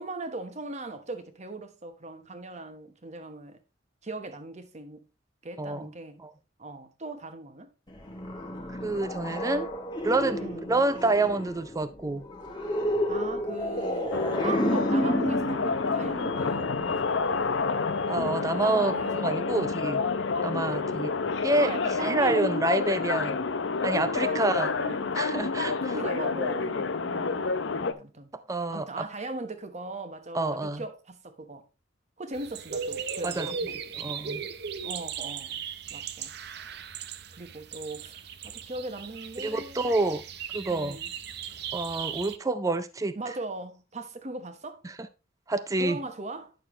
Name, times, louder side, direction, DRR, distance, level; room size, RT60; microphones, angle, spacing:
voice 1, 0.0-3.6 4.0-5.1 5.4-6.2 6.6-7.7 10.4-10.7 13.1-17.2 18.6-19.8 20.8-22.5 24.2-25.4 25.7-28.3 28.7-31.7 32.2-33.7 34.8-35.6 35.9-36.3 37.3-38.2 38.4-40.0 40.7-41.1 43.1-44.8 45.8-46.5, right 2 dB, 35° right, 1.1 m, -39 dB
voice 2, 5.6-5.9 6.2-6.3 8.7-9.7 10.0-10.4 10.7-12.2 18.1-20.0 20.4-21.1 21.4-21.7 22.0-23.4 23.8-24.7 25.1-25.9 28.5-29.1 30.3-30.8 33.2-33.5 33.9-34.4 39.4-40.2 40.5-41.0 41.7-43.2 45.5-46.0, right 2 dB, 15° right, 0.4 m, -28 dB
sound 1, 7.9-17.6, left 1 dB, 20° left, 1.3 m, -31 dB
sound 2, 14.1-27.9, left 4 dB, 70° left, 0.6 m, -29 dB
sound 3, 32.3-42.4, right 7 dB, 55° right, 0.7 m, -37 dB
10.0 x 6.6 x 3.1 m
head